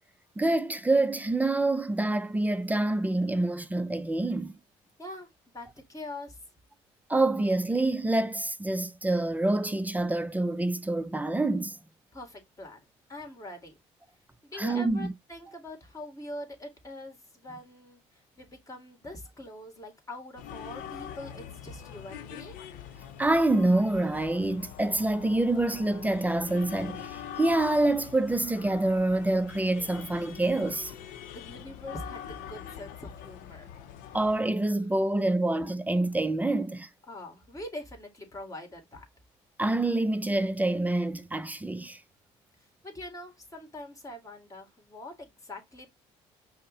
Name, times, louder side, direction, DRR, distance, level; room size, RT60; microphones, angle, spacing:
voice 1, 0.4-4.5 7.1-11.8 14.6-15.1 23.2-30.9 34.1-36.9 39.6-42.0, right 2 dB, 10° right, 0.5 m, -26 dB
voice 2, 5.0-6.4 12.1-13.8 14.4-22.6 31.3-33.7 37.1-39.1 42.6-45.9, left 1 dB, 25° left, 1.9 m, -43 dB
sound 1, 20.4-34.4, left 9 dB, 80° left, 0.5 m, -43 dB
5.3 x 2.1 x 3.8 m
supercardioid pair, 75°, 14 cm